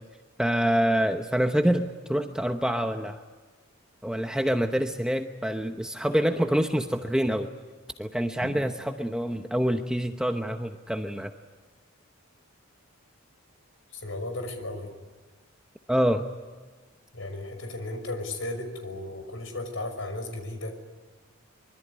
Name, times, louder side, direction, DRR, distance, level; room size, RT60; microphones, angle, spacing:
voice 1, 0.4-3.2 4.0-7.5 8.0-11.3 15.9-16.2, equal, 5° right, 5 dB, 0.9 m, -26 dB
voice 2, 13.9-14.9 17.1-20.7, left 2 dB, 65° left, 6 dB, 5.9 m, -35 dB
25.0 x 24.0 x 9.8 m, 1.3 s
head